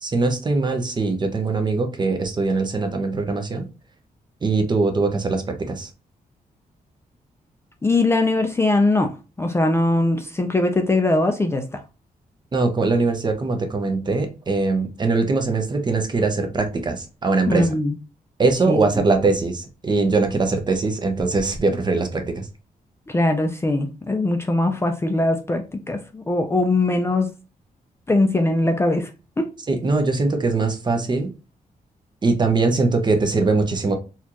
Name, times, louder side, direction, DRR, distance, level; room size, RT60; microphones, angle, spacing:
voice 1, 0.0-3.7 4.4-5.9 12.5-17.7 18.4-22.5 29.7-31.3 32.2-34.0, right 3 dB, 30° right, 0.7 m, -21 dB
voice 2, 7.8-9.1 9.4-11.8 17.5-18.0 18.7-19.0 23.1-27.3 28.1-29.1 29.4-29.5, left 2 dB, 15° left, 0.4 m, -21 dB
4.3 x 2.4 x 2.8 m
wide cardioid pair, 125°, 15 cm